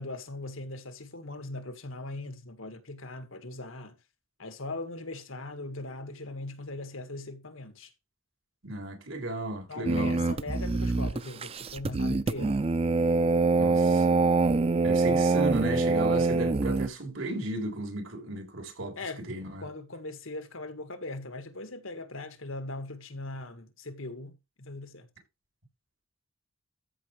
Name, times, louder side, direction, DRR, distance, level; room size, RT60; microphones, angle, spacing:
voice 1, 0.0-4.0 4.4-7.9 9.7-12.7 19.0-19.2 19.6-25.1, left 2 dB, 90° left, 1.9 m, -40 dB
voice 2, 8.6-10.1 13.6-14.2 14.8-19.7, right 1 dB, 90° right, 3.6 m, -34 dB
sound 1, 9.8-16.9, right 3 dB, 30° right, 0.5 m, -25 dB
14.0 x 6.1 x 3.3 m
head